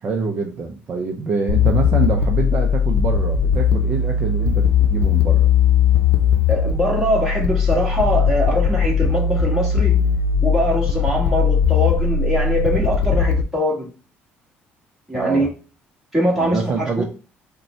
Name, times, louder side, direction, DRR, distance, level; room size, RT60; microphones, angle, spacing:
voice 1, 0.0-5.5 15.1-15.5 16.4-17.0, right 4 dB, 35° right, 0.6 m, -25 dB
sound 1, 1.5-13.4, left 7 dB, 70° left, 0.7 m, -18 dB
voice 2, 6.5-9.9 10.4-13.9 15.1-15.5 16.1-17.0, equal, 5° right, 1.6 m, -22 dB
5.1 x 2.3 x 4.3 m
cardioid pair, 145°, 4 cm